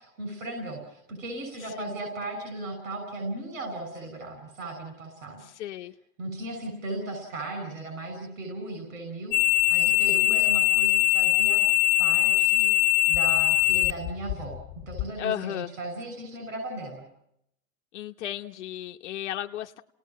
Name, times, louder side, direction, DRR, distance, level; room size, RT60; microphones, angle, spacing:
voice 1, 0.0-5.4 6.2-11.6 12.0-12.7 13.1-14.6 14.9-17.1, right 2 dB, 75° right, 3 dB, 7.1 m, -36 dB
voice 2, 5.4-5.9 15.2-15.7 17.9-19.8, left 12 dB, 55° left, 5 dB, 1.1 m, -34 dB
sound 1, 9.3-15.1, left 19 dB, 25° left, 1.6 m, -22 dB
29.0 x 19.0 x 7.5 m, 0.77 s
supercardioid pair, 175°, 40 cm